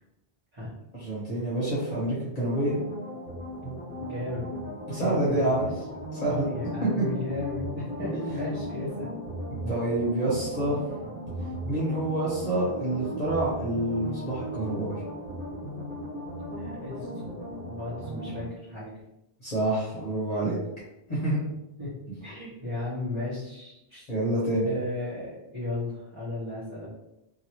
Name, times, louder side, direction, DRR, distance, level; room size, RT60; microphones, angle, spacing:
voice 1, 1.0-2.8 4.9-5.7 6.1-6.5 7.0-7.1 9.7-10.8 11.7-14.9 19.4-20.6 21.1-21.4 24.1-24.7, right 1 dB, 40° left, -7 dB, 1.0 m, -27 dB
sound 1, 2.5-18.5, equal, 10° left, 1.4 m, -37 dB
voice 2, 4.0-4.5 4.9-5.8 6.4-9.1 16.6-17.3 17.8-18.9 21.8-24.1 24.6-26.9, left 2 dB, 25° right, -12 dB, 1.1 m, -35 dB
2.7 x 2.6 x 3.0 m, 0.87 s
omnidirectional pair, 1.1 m